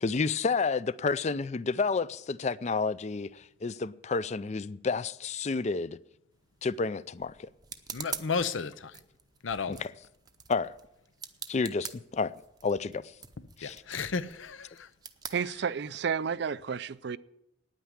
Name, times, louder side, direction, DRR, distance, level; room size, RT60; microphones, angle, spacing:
voice 1, 0.0-6.0 6.6-7.5 9.7-9.9 10.5-10.7 11.5-12.3 12.6-13.1 13.6-13.8, left 4 dB, 35° left, 0.4 m, -30 dB
sound 1, 6.3-16.2, right 7 dB, 20° right, 0.6 m, -46 dB
voice 2, 7.9-9.0 9.4-9.8 13.6-14.9, left 5 dB, 85° left, 0.7 m, -33 dB
voice 3, 15.3-17.2, right 6 dB, 60° right, 0.4 m, -31 dB
9.6 x 9.1 x 9.8 m
head